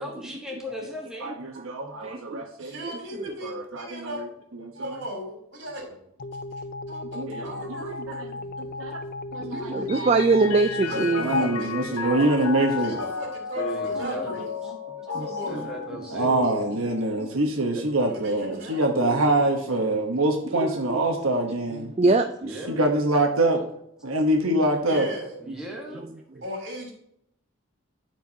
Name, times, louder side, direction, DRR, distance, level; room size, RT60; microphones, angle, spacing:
voice 1, 0.0-1.3 13.6-14.3 14.6-14.7 15.5-16.3 17.7-17.8 22.4-22.8 25.4-26.0, equal, 5° right, -2 dB, 1.2 m, -37 dB
voice 2, 1.2-2.7 3.4-5.0 7.1-9.0 9.3-10.1 10.7-10.8 11.2-13.0 13.9-15.2 16.1-21.9 22.5-23.6 24.0-25.1, right 1 dB, 75° right, 2 dB, 1.1 m, -26 dB
voice 3, 2.0-2.4 2.8-3.3 9.4-11.3 15.1-15.3 15.5-15.6 19.0-19.3 20.6-20.7 22.0-22.5, right 3 dB, 30° right, 7 dB, 0.4 m, -23 dB
voice 4, 2.6-4.2 4.7-5.9 6.9-7.0 7.4-8.7 9.5-9.9 10.8-12.3 12.8-14.4 15.0-15.8 18.0-18.8 24.9-25.4 26.4-26.9, equal, 55° right, 0 dB, 3.3 m, -37 dB
sound 1, 6.2-12.7, left 2 dB, 40° left, 0.4 m, -35 dB
Mallet percussion, 9.9-17.6, left 7 dB, 75° left, 0.7 m, -34 dB
13.0 x 4.6 x 2.8 m, 0.73 s
head